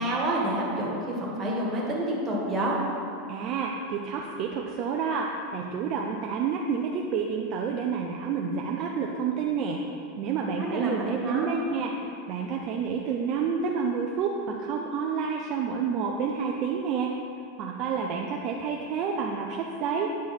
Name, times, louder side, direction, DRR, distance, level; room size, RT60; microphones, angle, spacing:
voice 1, 0.0-2.8 10.6-11.6, right 1 dB, 20° right, -5 dB, 1.8 m, -28 dB
voice 2, 3.3-9.8 10.2-11.9 12.3-17.1 17.6-20.1, right 6 dB, 45° right, 0 dB, 0.5 m, -29 dB
9.3 x 4.7 x 4.2 m, 2.6 s
supercardioid pair, 135°, 0 cm